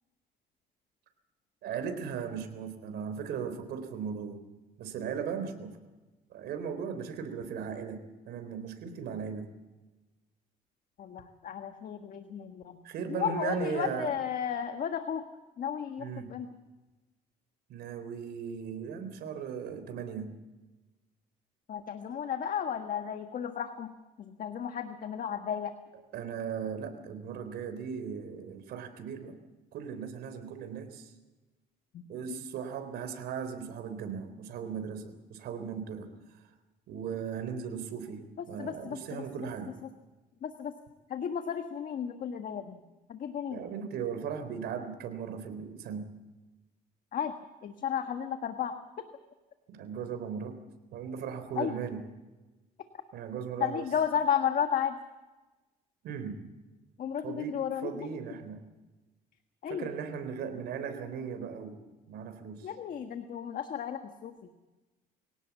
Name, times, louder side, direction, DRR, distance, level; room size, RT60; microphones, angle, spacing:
voice 1, 1.6-4.4 4.8-5.7 6.3-9.5 12.8-14.1 16.0-16.3 17.7-20.3 26.1-29.4 29.7-31.1 32.1-36.1 36.9-39.7 43.5-46.1 49.7-50.6 50.9-52.0 53.1-53.9 56.0-56.4 57.2-58.6 59.7-62.7, right 7 dB, 75° right, 8 dB, 3.8 m, -37 dB
voice 2, 11.0-12.8 13.1-15.2 15.6-16.5 21.7-25.7 31.9-32.0 32.3-32.4 38.6-39.2 40.4-40.7 41.1-42.8 43.1-43.6 47.1-47.3 47.6-48.7 51.6-51.7 53.6-55.0 57.0-58.1 59.6-59.9 62.6-64.3, left 8 dB, 55° left, 7 dB, 1.6 m, -33 dB
24.0 x 17.5 x 7.2 m, 1.1 s
cardioid pair, 110°, 17 cm